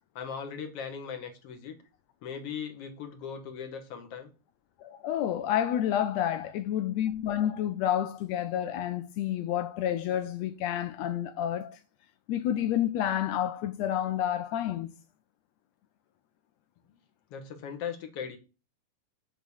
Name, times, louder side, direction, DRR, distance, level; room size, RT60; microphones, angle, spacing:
voice 1, 0.2-1.8 2.2-4.3 17.3-18.4, left 7 dB, 60° left, 2.0 m, -38 dB
voice 2, 4.8-11.8 12.3-14.9, left 11 dB, 80° left, 1.6 m, -29 dB
6.9 x 3.7 x 6.4 m
omnidirectional pair, 3.4 m